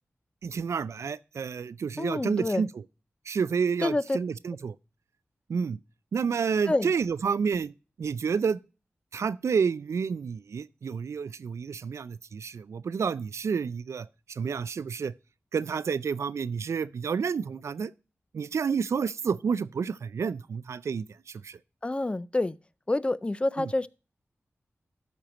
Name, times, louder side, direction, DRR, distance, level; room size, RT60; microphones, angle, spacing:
voice 1, 0.4-2.7 3.3-4.7 5.5-5.8 6.1-7.7 8.0-8.6 9.1-15.1 15.5-17.9 18.3-21.6 23.6-23.7, right 6 dB, 80° right, 0.4 m, -29 dB
voice 2, 2.0-2.6 3.8-4.2 6.7-6.9 21.8-22.6 22.9-23.9, left 2 dB, 25° left, 0.4 m, -27 dB
12.5 x 4.5 x 5.1 m
wide cardioid pair, 75°, 5 cm